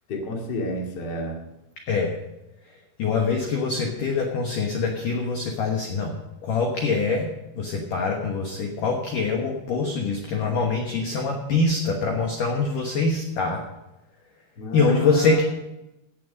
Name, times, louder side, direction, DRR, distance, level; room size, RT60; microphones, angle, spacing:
voice 1, 0.1-1.4 14.6-15.4, left 1 dB, 75° left, 0 dB, 0.9 m, -30 dB
voice 2, 1.9-2.2 3.0-6.2 6.4-13.6 14.7-15.4, left 4 dB, 90° left, 1 dB, 1.8 m, -24 dB
16.5 x 7.4 x 5.3 m, 0.94 s
omnidirectional pair, 5.8 m